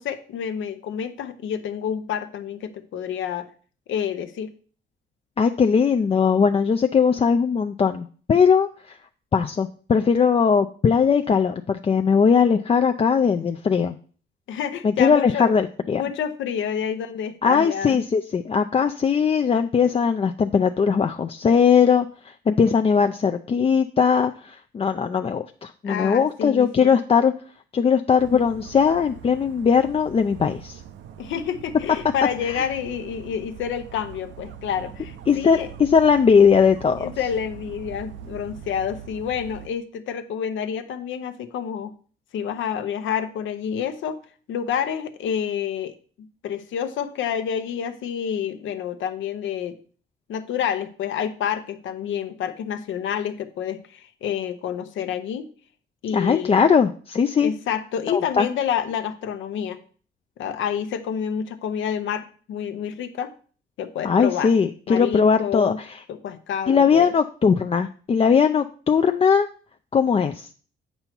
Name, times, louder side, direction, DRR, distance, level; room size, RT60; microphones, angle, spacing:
voice 1, 0.0-3.5 3.9-4.5 14.5-15.5 16.0-18.0 25.8-26.9 31.2-35.7 37.0-41.9 42.3-44.2 44.5-45.9 46.4-49.8 50.3-55.5 56.0-56.6 57.4-59.8 60.4-63.3 63.8-64.5 64.9-65.8 66.1-67.1, left 8 dB, 75° left, 9 dB, 0.9 m, -28 dB
voice 2, 5.4-9.0 9.3-14.0 14.8-16.0 17.4-27.3 27.7-30.8 32.4-32.7 35.3-37.1 56.1-57.5 58.1-58.5 64.0-66.0 66.7-69.5 69.9-70.5, left 6 dB, 30° left, 6 dB, 0.4 m, -19 dB
Dog, 28.2-39.7, right 9 dB, 75° right, 0.7 m, -42 dB
7.9 x 5.5 x 4.4 m, 0.42 s
cardioid pair, 90°, 20 cm